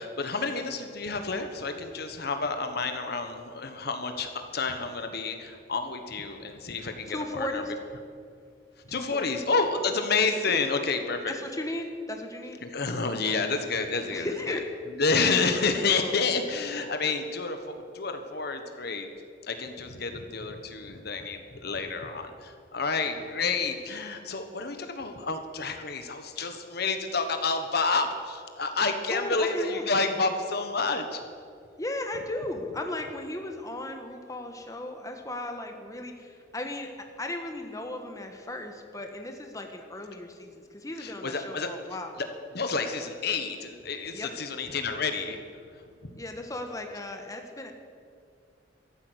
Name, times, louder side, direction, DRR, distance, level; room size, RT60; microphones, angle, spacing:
voice 1, 0.0-7.6 8.9-11.3 12.6-14.6 15.0-17.6 17.9-19.1 19.5-31.2 41.0-41.7 42.5-45.4, left 4 dB, 60° left, 6 dB, 1.3 m, -29 dB
voice 2, 7.1-7.7 8.9-9.4 10.5-10.6 11.2-12.6 14.1-14.6 15.7-16.1 29.1-29.9 31.8-36.9 37.2-42.2 44.1-44.3 46.2-47.7, left 1 dB, 20° left, 4 dB, 1.3 m, -36 dB
14.0 x 12.5 x 8.0 m, 2.4 s
head